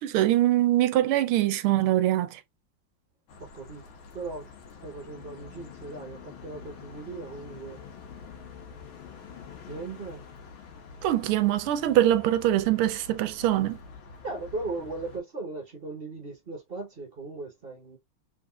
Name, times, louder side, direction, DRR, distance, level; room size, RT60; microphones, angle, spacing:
voice 1, 0.0-2.4 11.0-13.8, right 13 dB, 90° right, 1.5 m, -23 dB
sound 1, 3.3-15.2, left 6 dB, 75° left, 1.9 m, -47 dB
voice 2, 3.4-3.8 4.1-4.5 4.8-7.8 9.7-10.2 14.2-18.0, right 3 dB, 40° right, 0.8 m, -38 dB
4.2 x 3.8 x 2.3 m
omnidirectional pair, 2.3 m